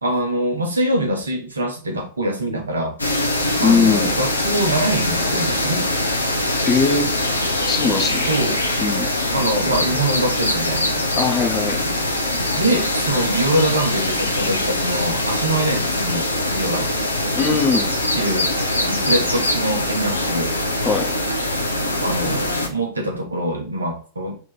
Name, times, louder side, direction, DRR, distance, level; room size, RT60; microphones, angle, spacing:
voice 1, 0.0-2.9 3.6-5.9 8.0-8.6 9.3-11.0 11.8-12.0 12.5-16.9 18.1-20.5 21.8-24.4, right 1 dB, 75° right, 2 dB, 1.0 m, -24 dB
sound 1, 3.0-22.7, left 1 dB, 80° left, 0.7 m, -22 dB
voice 2, 3.6-4.1 6.7-7.2 7.7-8.3 8.8-9.1 11.2-11.7 17.4-17.9 20.8-21.1, left 5 dB, 25° left, 3 dB, 1.0 m, -20 dB
4.2 x 2.9 x 3.8 m, 0.40 s
figure-of-eight pair, 90°, 0 cm